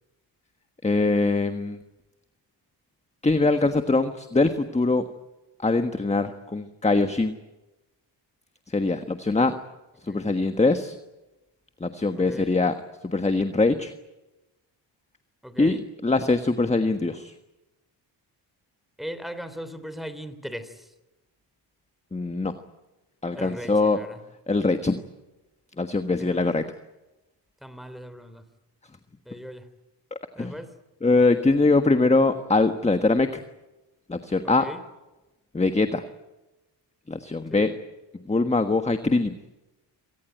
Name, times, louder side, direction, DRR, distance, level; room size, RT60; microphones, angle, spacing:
voice 1, 0.8-1.8 3.2-5.0 5.6-7.3 8.7-9.5 10.0-11.0 11.8-12.7 13.0-13.9 15.6-15.8 16.0-17.3 22.1-22.5 23.2-24.0 24.5-25.0 25.8-26.6 30.4-30.6 31.0-33.4 34.1-34.6 35.5-36.0 37.1-37.7 38.3-39.3, left 3 dB, 15° left, 8 dB, 1.4 m, -22 dB
voice 2, 12.2-12.5 15.4-15.9 19.0-20.9 23.3-24.2 26.2-26.4 27.6-28.4 29.3-29.6 30.3-30.7 34.4-34.8 37.5-37.8, equal, ahead, 12 dB, 3.2 m, -38 dB
26.0 x 18.5 x 9.2 m, 1.1 s
cardioid pair, 70°, 44 cm